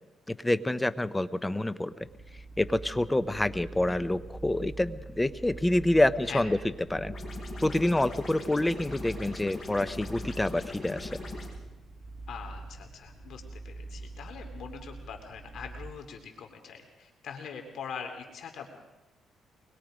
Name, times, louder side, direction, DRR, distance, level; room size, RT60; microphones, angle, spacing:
voice 1, 0.3-2.1 2.6-6.6 6.9-7.1 7.6-11.1, left 1 dB, 10° left, 14 dB, 0.8 m, -27 dB
sound 1, 2.0-15.9, right 3 dB, 40° right, 2.0 m, -44 dB
sound 2, 7.1-11.5, left 3 dB, 30° left, 7.6 m, -41 dB
voice 2, 12.3-18.7, left 7 dB, 70° left, 4 dB, 2.9 m, -42 dB
24.0 x 21.5 x 5.1 m, 1.0 s
cardioid pair, 90°, 0 cm